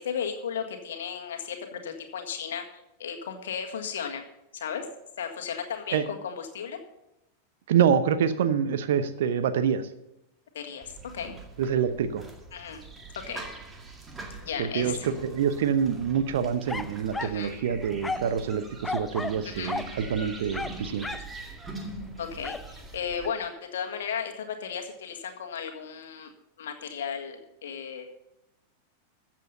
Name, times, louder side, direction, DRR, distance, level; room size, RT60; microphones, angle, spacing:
voice 1, 0.0-2.6 3.0-4.2 4.5-4.9 5.2-6.8 10.5-11.3 12.5-12.8 13.3-13.4 14.4-15.1 17.2-17.5 19.4-19.8 22.2-26.3 26.6-28.1, left 7 dB, 60° left, 4 dB, 1.7 m, -35 dB
voice 2, 7.7-9.8 11.6-12.2 14.6-21.1, right 8 dB, 55° right, 12 dB, 0.9 m, -26 dB
sound 1, 10.8-23.3, right 3 dB, 15° right, 1.9 m, -43 dB
sound 2, 16.7-17.4 18.0-18.4 18.8-19.4 19.7-19.9 20.5-21.3 22.4-22.7, left 3 dB, 10° left, 0.5 m, -33 dB
14.5 x 7.6 x 5.5 m, 0.88 s
figure-of-eight pair, 90°, 0 cm